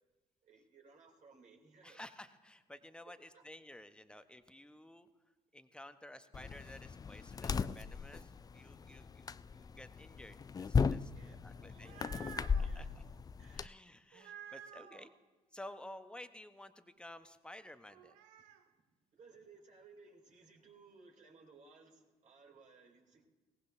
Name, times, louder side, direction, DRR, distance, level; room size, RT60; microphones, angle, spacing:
voice 1, 0.4-2.0 3.1-3.5 11.1-13.0 13.3-13.8 18.7-18.8 19.1-23.3, right 4 dB, 45° right, 0 dB, 3.1 m, -61 dB
voice 2, 1.8-5.1 5.5-13.0 13.6-15.1 15.5-18.2, left 1 dB, 5° left, 10 dB, 1.0 m, -53 dB
sound 1, 6.3-13.7, left 5 dB, 20° left, 0.4 m, -37 dB
sound 2, 11.6-12.7 14.1-15.1 17.9-18.6, right 8 dB, 65° right, 0.8 m, -52 dB
21.5 x 18.0 x 2.7 m, 1.2 s
figure-of-eight pair, 50°, 18 cm